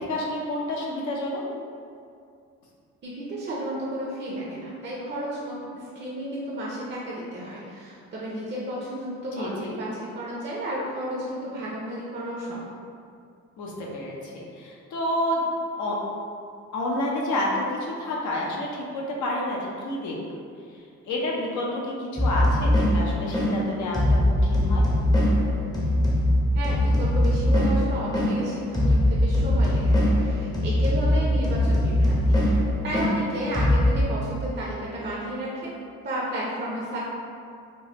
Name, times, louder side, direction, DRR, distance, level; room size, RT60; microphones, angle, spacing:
voice 1, 0.0-1.4 9.3-9.8 13.6-16.0 16.7-20.2 21.0-24.8, left 1 dB, 75° left, -3 dB, 0.7 m, -29 dB
voice 2, 3.0-12.6 26.5-35.8 36.0-37.0, right 1 dB, 35° right, -5 dB, 0.6 m, -32 dB
sound 1, 22.2-34.0, left 1 dB, 15° left, 0.6 m, -22 dB
3.4 x 2.0 x 2.8 m, 2.4 s
cardioid pair, 80°, 30 cm